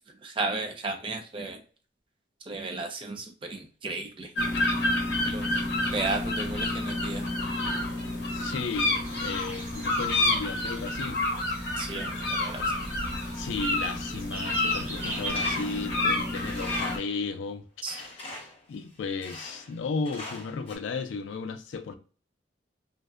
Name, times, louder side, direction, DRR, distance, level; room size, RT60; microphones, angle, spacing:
voice 1, 0.2-1.6 2.5-4.8 5.2-5.5 5.9-7.2 11.8-12.9 17.8-18.0, right 3 dB, 25° right, 0.4 m, -34 dB
sound 1, 4.4-17.0, left 2 dB, 60° left, 0.8 m, -29 dB
voice 2, 8.3-11.2 13.3-17.6 18.0-22.0, left 4 dB, 80° left, 0.4 m, -35 dB
sound 2, 8.7-15.3, right 2 dB, 10° right, 1.0 m, -41 dB
Tools, 14.9-17.2 17.9-18.6 19.2-19.8 20.0-20.8, left 2 dB, 30° left, 0.7 m, -41 dB
2.5 x 2.1 x 2.3 m
head